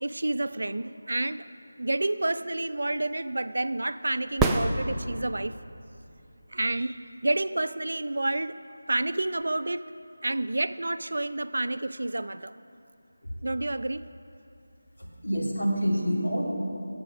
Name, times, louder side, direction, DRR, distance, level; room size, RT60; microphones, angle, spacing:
voice 1, 0.0-1.5 1.8-5.6 6.5-8.6 8.9-9.9 10.2-12.5 13.4-14.0, right 2 dB, 75° right, 12 dB, 0.5 m, -29 dB
sound 1, 4.4-5.5 9.4-9.5, right 2 dB, 5° right, 0.3 m, -26 dB
voice 2, 15.0-16.4, equal, 80° left, -3 dB, 2.9 m, -27 dB
17.0 x 7.7 x 6.0 m, 2.6 s
figure-of-eight pair, 170°, 0 cm